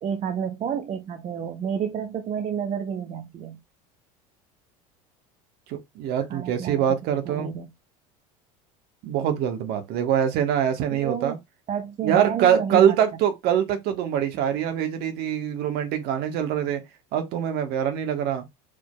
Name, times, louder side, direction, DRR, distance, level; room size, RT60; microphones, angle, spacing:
voice 1, 0.0-3.6 6.3-6.8 7.2-7.7 10.9-11.4 11.7-13.0, right 8 dB, 40° right, 0.8 m, -30 dB
voice 2, 5.7-7.5 9.0-11.4 12.0-16.8 17.1-18.5, right 9 dB, 60° right, 1.2 m, -24 dB
4.9 x 4.4 x 2.2 m
supercardioid pair, 90°, 18 cm